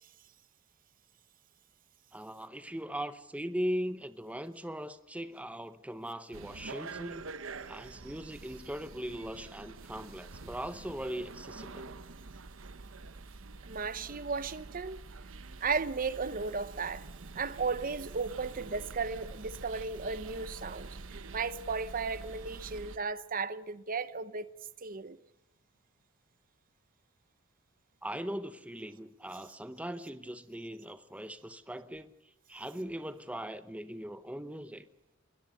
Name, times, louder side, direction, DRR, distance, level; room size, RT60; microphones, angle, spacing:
voice 1, 2.1-7.3 7.7-11.9 28.0-34.8, equal, 5° right, 0.8 m, -39 dB
sound 1, 6.3-23.0, right 3 dB, 70° right, 1.0 m, -46 dB
voice 2, 13.6-15.1 15.6-17.1 17.3-21.0 21.3-24.4 24.8-25.2, right 4 dB, 45° right, 0.9 m, -35 dB
21.5 x 21.0 x 6.6 m
head